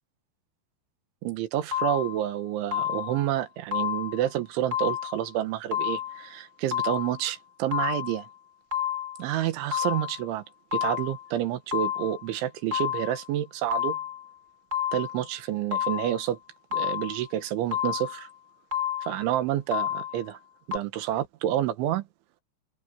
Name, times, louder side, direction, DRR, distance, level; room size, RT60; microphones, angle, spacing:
voice 1, 1.2-8.3 9.2-10.4 10.7-14.0 14.9-16.4 16.7-18.3 19.0-20.4 20.7-22.0, right 12 dB, 80° right, 3.8 m, -29 dB
sound 1, 1.7-2.3 2.7-3.3 3.7-4.3 4.7-5.3 5.7-6.3 6.7-7.3 7.7-8.3 8.7-9.3 9.7-10.3 10.7-11.3 11.7-12.3 12.7-13.3 13.7-14.3 14.7-15.3 15.7-16.3 16.7-17.3 17.7-18.3 18.7-19.3 19.7-20.3 20.7-20.8, left 10 dB, 15° right, 3.8 m, -30 dB
omnidirectional pair, 5.5 m